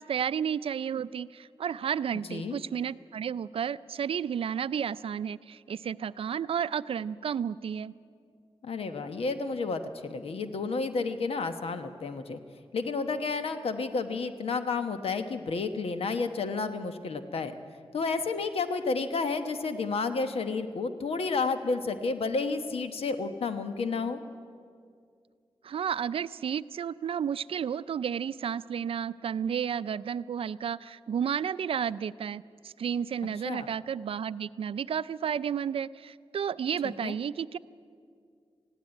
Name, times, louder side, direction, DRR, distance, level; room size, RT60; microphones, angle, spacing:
voice 1, 0.0-7.9 25.6-37.6, right 8 dB, 70° right, 16 dB, 0.4 m, -32 dB
voice 2, 8.6-12.4 12.7-17.5 17.9-24.2 33.4-33.7 37.0-37.2, left 4 dB, 75° left, 8 dB, 1.1 m, -31 dB
20.0 x 15.5 x 9.0 m, 2.2 s
wide cardioid pair, 125°, 10 cm